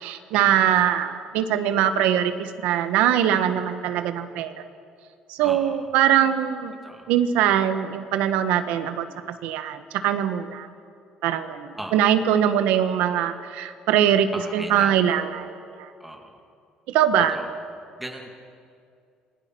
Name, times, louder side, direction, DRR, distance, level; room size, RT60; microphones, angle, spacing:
voice 1, 0.0-4.6 5.3-6.7 7.1-9.1 9.4-10.7 11.2-15.9 16.9-17.4, right 10 dB, 90° right, 9 dB, 1.4 m, -22 dB
voice 2, 5.4-5.8 6.8-7.1 11.8-12.2 14.3-15.1 16.0-16.4 17.3-17.5 18.0-18.3, right 1 dB, 5° right, 2 dB, 2.4 m, -37 dB
28.0 x 22.0 x 6.2 m, 2.4 s
cardioid pair, 150°, 2 cm